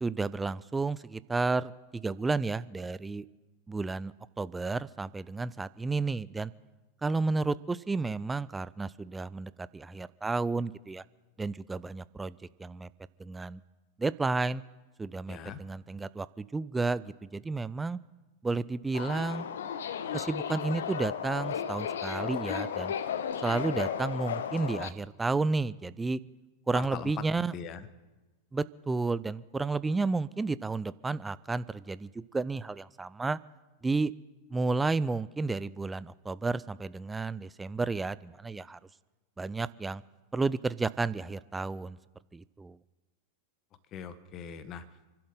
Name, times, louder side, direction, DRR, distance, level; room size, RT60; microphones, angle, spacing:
voice 1, 0.0-3.2 3.7-6.5 7.0-11.0 11.4-12.9 13.2-13.6 14.0-14.6 15.0-18.0 18.4-19.5 20.1-22.9 23.4-26.2 26.7-27.5 28.5-33.4 33.8-34.1 34.5-38.8 39.4-40.0 40.3-42.0 42.3-42.8, right 3 dB, 10° right, 17 dB, 0.5 m, -32 dB
voice 2, 15.3-15.6 26.7-27.1 27.4-27.9 43.9-44.9, left 8 dB, 35° left, 13 dB, 1.3 m, -41 dB
Subway metro underground, 18.9-24.9, left 8 dB, 60° left, 0.9 m, -34 dB
29.5 x 11.5 x 3.8 m, 1.2 s
figure-of-eight pair, 90°, 0 cm